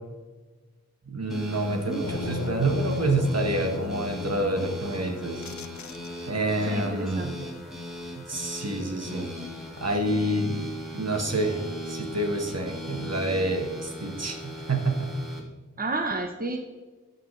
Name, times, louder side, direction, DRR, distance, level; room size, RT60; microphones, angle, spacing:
voice 1, 1.1-5.4 6.3-7.4 8.2-9.3 9.8-10.6 10.9-11.6 11.9-15.1, right 2 dB, 60° right, 3 dB, 1.4 m, -27 dB
sound 1, 1.3-15.4, equal, ahead, 2.1 m, -39 dB
voice 2, 1.7-2.0 6.7-7.5 15.8-16.6, right 2 dB, 30° right, 4 dB, 0.9 m, -31 dB
sound 2, 2.0-6.5, left 6 dB, 75° left, 0.5 m, -37 dB
13.0 x 6.9 x 3.2 m, 1.3 s
wide cardioid pair, 45°, 29 cm